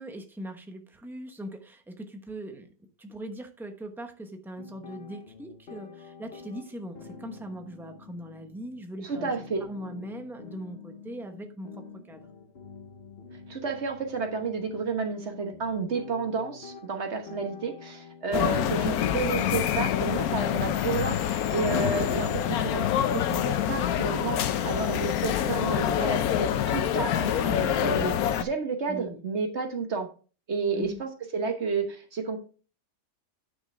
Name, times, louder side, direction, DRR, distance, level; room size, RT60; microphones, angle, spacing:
voice 1, 0.0-2.7 3.0-12.3 18.5-18.8 28.9-29.2 30.7-31.0, equal, ahead, 5 dB, 0.8 m, -40 dB
sound 1, 4.6-20.0, left 5 dB, 45° left, 1.1 m, -47 dB
voice 2, 9.0-9.7 13.5-30.1 30.5-32.4, right 5 dB, 50° right, 5 dB, 1.5 m, -31 dB
sound 2, 18.3-28.4, left 10 dB, 80° left, 1.1 m, -26 dB
9.9 x 6.1 x 3.3 m, 0.36 s
omnidirectional pair, 1.5 m